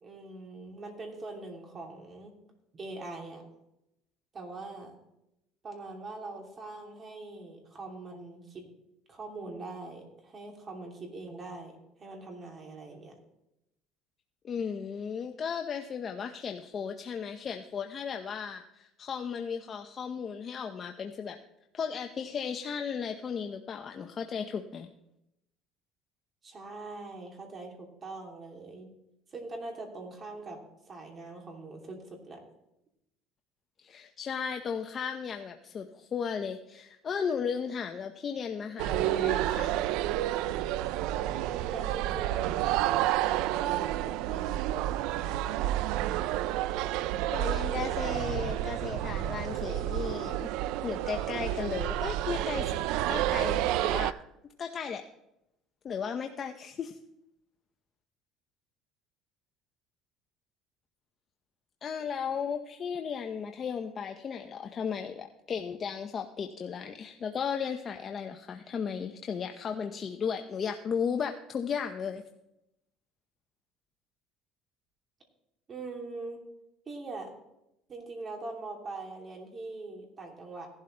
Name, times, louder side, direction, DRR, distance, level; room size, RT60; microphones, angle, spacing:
voice 1, 0.0-2.3 2.8-3.4 4.3-4.9 5.6-8.6 9.1-11.7 12.0-13.1 26.4-28.9 29.3-32.4 41.5-42.9 43.4-44.6 75.7-76.4 76.8-77.3 77.9-80.7, right 3 dB, 30° right, 1 dB, 2.9 m, -42 dB
voice 2, 14.4-21.4 21.7-24.9 33.8-39.7 47.3-50.5 50.8-52.8 53.1-54.2 54.6-55.0 55.8-57.0 61.8-72.2, left 6 dB, 35° left, 5 dB, 0.7 m, -35 dB
sound 1, 38.8-54.1, right 14 dB, 75° right, 0.4 m, -30 dB
16.5 x 11.5 x 3.3 m, 0.85 s
cardioid pair, 140°, 0 cm